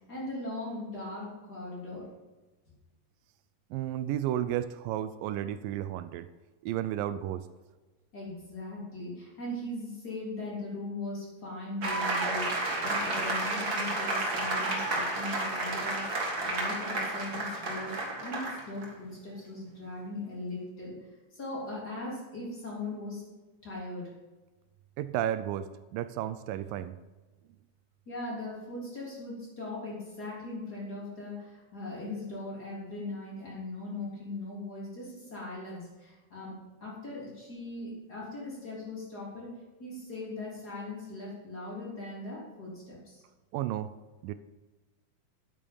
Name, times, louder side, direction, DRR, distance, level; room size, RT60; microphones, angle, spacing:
voice 1, 0.1-2.1 8.1-18.0 18.2-21.0 21.3-23.2 23.6-24.1 28.1-39.5 39.8-43.2, left 2 dB, 25° left, -5 dB, 3.8 m, -39 dB
voice 2, 3.7-6.3 6.6-7.5 25.0-27.0 43.5-43.9 44.2-44.3, right 11 dB, 85° right, 12 dB, 2.2 m, -33 dB
sound 1, 11.8-18.9, right 2 dB, 40° right, 1.6 m, -31 dB
11.0 x 8.6 x 5.4 m, 1.2 s
omnidirectional pair, 4.0 m